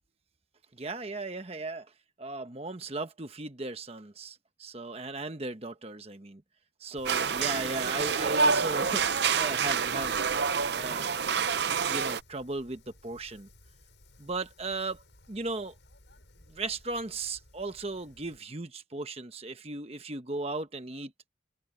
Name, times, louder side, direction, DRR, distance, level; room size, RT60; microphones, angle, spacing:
voice 1, 0.7-1.9 2.2-6.4 6.8-10.3 10.7-11.1 11.9-13.5 14.2-15.7 16.5-21.1, right 3 dB, 30° right, 1.1 m, -36 dB
Wind, 7.0-18.4, left 2 dB, 65° left, 6.2 m, -56 dB
sound 1, 7.1-12.2, right 5 dB, 55° right, 0.7 m, -27 dB
open air
head